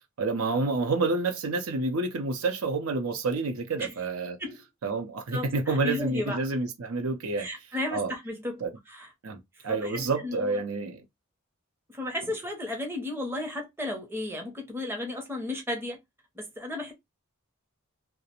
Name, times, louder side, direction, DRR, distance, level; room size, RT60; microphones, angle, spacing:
voice 1, 0.2-4.4 4.8-7.5 7.9-8.1 8.6-8.7 9.2-9.4 9.6-11.0, right 3 dB, 70° right, 0.6 m, -28 dB
voice 2, 5.3-6.4 7.4-9.1 9.6-10.6 11.9-16.0 16.4-16.9, left 1 dB, 10° right, 0.6 m, -34 dB
2.4 x 2.0 x 2.8 m
head